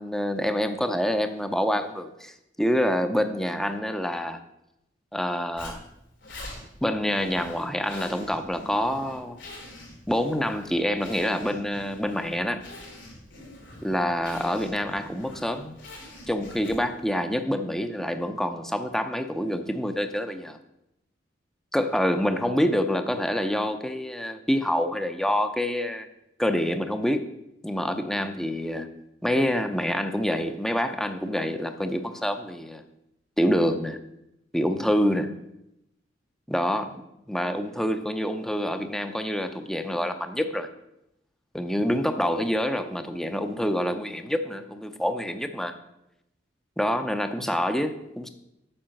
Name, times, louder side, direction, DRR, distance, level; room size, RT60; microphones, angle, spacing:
voice 1, 0.0-4.4 5.1-5.8 6.8-9.4 10.1-12.6 13.8-15.8 16.3-20.6 21.7-26.1 26.4-27.3 27.6-28.9 29.2-32.8 33.4-34.0 34.5-35.3 36.5-37.0 37.3-40.7 41.5-45.7 46.8-48.3, equal, ahead, 8 dB, 0.6 m, -26 dB
Zipper (clothing), 5.6-17.0, left 1 dB, 80° left, 4.0 m, -45 dB
8.7 x 6.1 x 7.7 m, 0.86 s
head